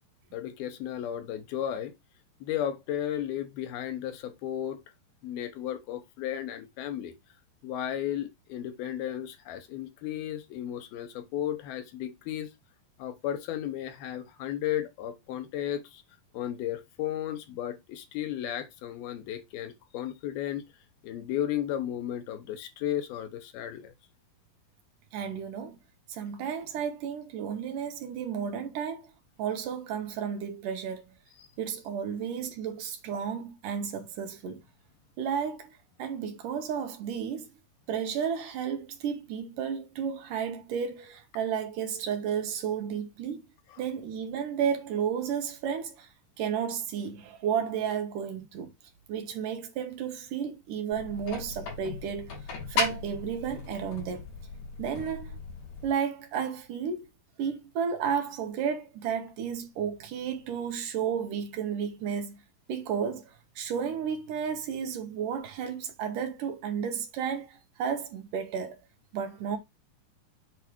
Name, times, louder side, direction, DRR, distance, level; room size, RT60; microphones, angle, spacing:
voice 1, 0.3-1.9 2.4-4.8 5.2-7.1 7.6-12.5 13.0-16.0 16.3-20.6 21.0-23.9 31.4-31.5, left 11 dB, 85° left, 2.9 m, -34 dB
voice 2, 25.1-25.8 26.1-29.1 29.4-31.1 31.6-34.6 35.2-37.5 37.9-43.4 43.8-46.1 46.4-48.7 49.1-52.3 52.7-54.3 54.8-55.4 55.8-57.1 57.4-62.4 62.7-68.8 69.1-69.6, right 7 dB, 70° right, 2.6 m, -32 dB
sound 1, 50.9-55.9, left 4 dB, 60° left, 3.8 m, -36 dB
8.2 x 3.4 x 4.5 m
omnidirectional pair, 4.2 m